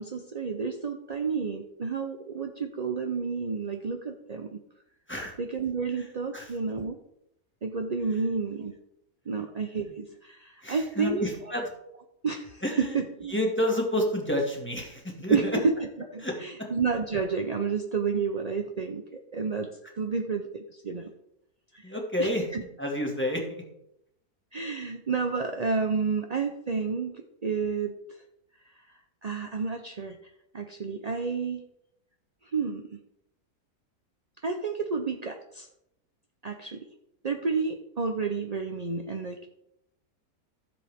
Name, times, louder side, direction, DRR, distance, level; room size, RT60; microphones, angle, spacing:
voice 1, 0.0-4.6 5.4-7.0 7.6-8.7 9.3-11.3 12.2-13.4 15.3-15.7 16.1-19.7 20.0-21.1 21.7-22.6 24.5-28.2 28.9-30.2 30.5-31.6 32.4-33.0 34.4-35.7 36.4-36.9 37.2-39.5, right 5 dB, 45° right, 4 dB, 0.5 m, -30 dB
voice 2, 10.6-11.6 12.6-13.0 13.3-15.5 16.2-16.7 21.8-22.5 22.8-23.4, left 1 dB, 5° left, 0 dB, 2.0 m, -29 dB
14.5 x 7.5 x 3.6 m, 0.81 s
omnidirectional pair, 1.7 m